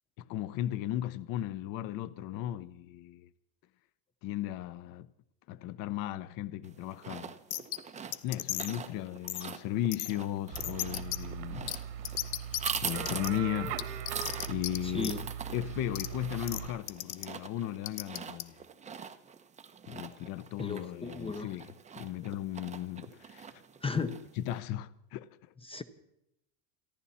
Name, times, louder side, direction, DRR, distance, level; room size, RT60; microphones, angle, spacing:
voice 1, 0.2-3.3 4.2-5.1 5.5-7.3 8.2-11.7 12.8-13.8 14.2-15.1 15.5-18.6 19.9-21.7 22.0-23.6 24.4-25.5, left 13 dB, 50° left, 0.8 m, -36 dB
sound 1, 6.6-24.6, right 6 dB, 15° right, 1.0 m, -44 dB
sound 2, 7.5-7.8 8.1-8.8 9.3-9.5 9.9-10.1 10.6-11.2 11.7-11.8 12.0-13.3 13.8-14.8 15.0-15.1 16.0-16.1 16.5-16.6 16.9-17.3 17.9-18.4, left 17 dB, 85° left, 1.3 m, -35 dB
sound 3, 10.5-16.7, right 9 dB, 65° right, 2.5 m, -40 dB
voice 2, 14.8-15.3 20.6-21.5 23.8-24.2 25.6-25.8, left 4 dB, 15° left, 0.8 m, -35 dB
29.5 x 11.5 x 4.2 m
cardioid pair, 150°, 43 cm